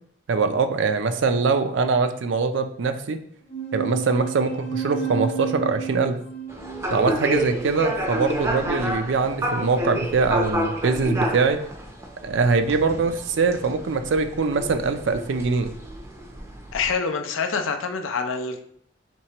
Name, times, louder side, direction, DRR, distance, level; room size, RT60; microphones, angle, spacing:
voice 1, 0.3-3.2 3.7-6.2 6.9-11.6 12.2-15.7, right 4 dB, 70° right, 8 dB, 0.4 m, -22 dB
sound 1, 3.5-8.4, right 7 dB, 35° left, 0.8 m, -33 dB
sound 2, 6.5-16.9, equal, 15° right, 0.5 m, -29 dB
voice 2, 16.7-18.6, left 5 dB, 85° left, 6 dB, 0.5 m, -26 dB
4.5 x 3.2 x 2.9 m, 0.65 s
head